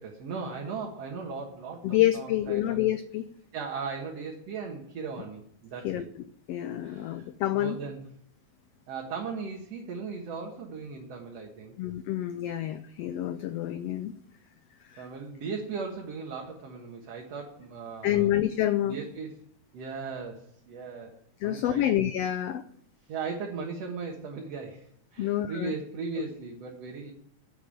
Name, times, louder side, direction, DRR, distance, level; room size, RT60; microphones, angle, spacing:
voice 1, 0.0-2.8 3.5-6.1 6.8-7.3 7.5-8.0 8.9-11.8 15.0-18.3 18.8-19.3 19.7-21.2 21.4-21.9 23.1-27.1, right 5 dB, 60° right, 0 dB, 2.4 m, -37 dB
voice 2, 1.8-3.2 5.8-6.1 6.5-7.8 11.8-14.1 14.9-15.1 18.0-19.0 21.4-22.6 25.2-25.7, left 13 dB, 85° left, 11 dB, 1.4 m, -28 dB
10.5 x 7.1 x 8.9 m, 0.66 s
omnidirectional pair, 3.5 m